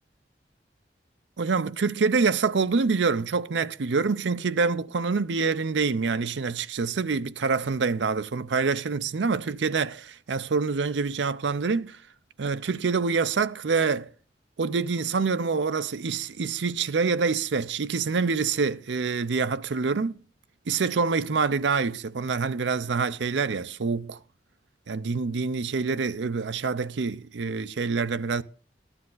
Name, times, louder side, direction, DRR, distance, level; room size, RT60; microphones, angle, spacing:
voice 1, 1.4-12.0 12.4-14.1 14.6-20.2 20.7-24.2 24.9-28.4, right 4 dB, 85° right, 0.6 m, -26 dB
14.0 x 10.0 x 3.9 m
head